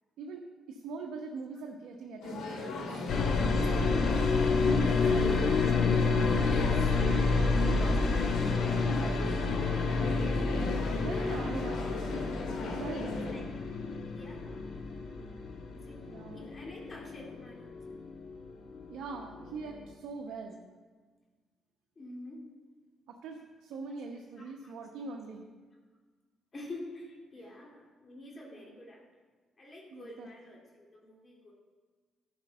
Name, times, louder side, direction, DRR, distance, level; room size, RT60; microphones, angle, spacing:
voice 1, 0.2-3.0 3.4-5.8 8.3-8.5 11.0-12.0 12.6-13.5 16.1-16.5 18.9-20.6 23.1-25.4 28.5-28.8 29.9-30.3, right 4 dB, 80° right, 1 dB, 0.9 m, -43 dB
sound 1, 2.2-13.3, left 2 dB, 85° left, 1.9 m, -37 dB
sound 2, 3.1-18.9 19.1-19.9, left 4 dB, 65° left, 1.2 m, -29 dB
voice 2, 3.5-4.4 4.7-4.8 5.8-5.9 6.5-7.0 7.5-8.8 9.1-10.2 13.3-13.5 13.7-13.9 14.1-14.6 15.7-16.0 16.3-17.8 22.0-22.4 24.4-24.7 26.5-29.0 29.6-31.5, left 1 dB, 35° left, -1 dB, 2.2 m, -47 dB
11.5 x 5.2 x 6.7 m, 1.4 s
cardioid pair, 90°, 0 cm